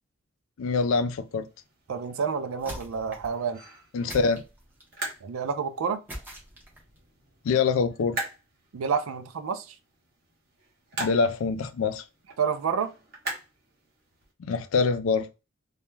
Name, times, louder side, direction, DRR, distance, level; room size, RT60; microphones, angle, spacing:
voice 1, 0.6-1.5 3.9-4.4 7.4-8.2 11.0-12.0 14.4-15.3, left 4 dB, 80° left, 0.4 m, -25 dB
sound 1, 1.1-14.3, right 2 dB, 50° right, 0.9 m, -42 dB
voice 2, 1.9-3.6 5.2-6.0 8.7-9.7 12.4-12.9, right 6 dB, 90° right, 0.4 m, -29 dB
sound 2, 2.6-3.4 4.1-5.0 6.1-7.0, right 1 dB, 10° right, 0.6 m, -42 dB
2.3 x 2.1 x 3.0 m
head